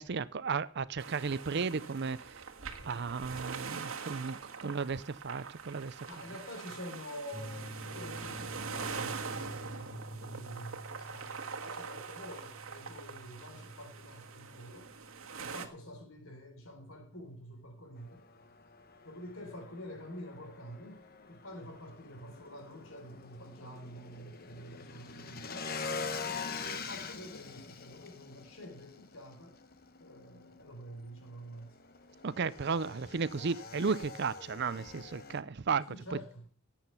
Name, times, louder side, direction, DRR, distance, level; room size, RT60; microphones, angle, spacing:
voice 1, 0.0-2.2 2.6-5.9 32.2-35.9, right 5 dB, 50° right, 0.5 m, -34 dB
sound 1, 1.0-15.7, right 5 dB, 70° right, 1.6 m, -43 dB
voice 2, 6.1-14.9 15.4-18.3 19.1-29.6 30.0-31.8 35.9-36.5, equal, 70° left, 3.7 m, -48 dB
sound 2, 7.3-18.5, equal, 15° left, 2.9 m, -49 dB
Motorcycle / Engine, 18.0-35.4, left 4 dB, 45° left, 1.1 m, -45 dB
17.0 x 8.8 x 5.7 m
head